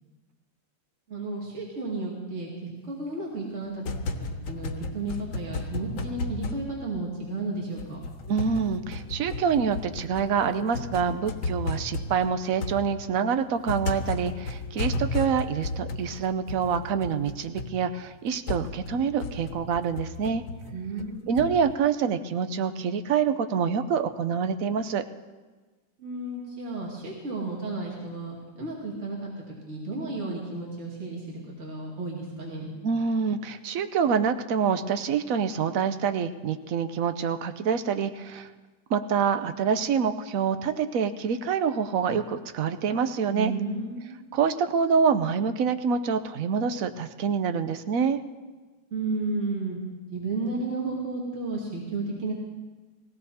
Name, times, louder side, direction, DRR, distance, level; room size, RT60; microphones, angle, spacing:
voice 1, 1.1-3.8 4.2-8.0 20.7-21.4 26.0-32.7 43.3-44.4 48.9-49.8 50.1-52.3, right 3 dB, 40° right, -4 dB, 2.6 m, -33 dB
sound 1, 3.6-7.4 7.8-21.7, left 3 dB, 90° left, 1.9 m, -34 dB
voice 2, 8.3-20.4 21.3-25.0 32.8-38.5 38.9-43.5 44.3-48.2, right 6 dB, 60° right, 10 dB, 1.0 m, -26 dB
20.0 x 16.5 x 4.2 m, 1.3 s
omnidirectional pair, 2.0 m